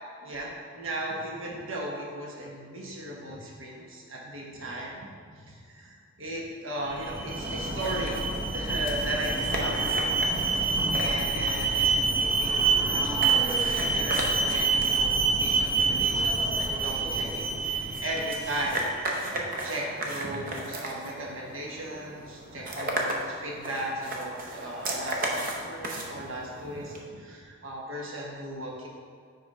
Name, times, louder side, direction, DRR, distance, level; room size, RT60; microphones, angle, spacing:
voice 1, 0.2-8.2 8.5-10.2 10.5-18.8 19.1-28.9, right 1 dB, 70° right, -2 dB, 1.2 m, -37 dB
Alarm, 6.9-18.9, right 3 dB, 10° right, 0.8 m, -27 dB
sound 1, 7.1-27.0, right 1 dB, 40° right, 0.7 m, -37 dB
5.3 x 4.5 x 4.8 m, 2.2 s
head